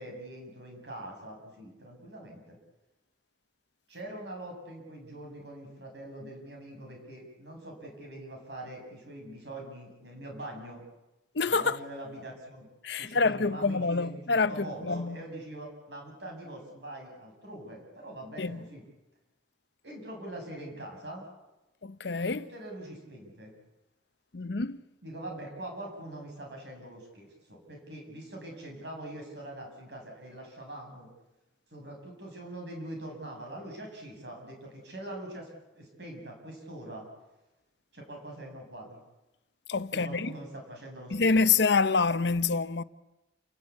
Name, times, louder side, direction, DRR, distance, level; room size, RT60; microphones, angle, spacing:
voice 1, 0.0-2.6 3.9-10.8 11.5-12.7 13.0-18.8 19.8-21.3 22.3-23.5 25.0-31.1 31.7-35.5 35.7-37.1 37.9-39.0 39.9-41.3, right 1 dB, 65° right, 7.5 m, -43 dB
voice 2, 11.3-11.8 12.8-15.2 18.4-18.6 21.8-22.5 24.3-24.8 39.7-40.3 41.1-42.8, left 4 dB, 65° left, 0.8 m, -27 dB
29.5 x 17.5 x 8.5 m
head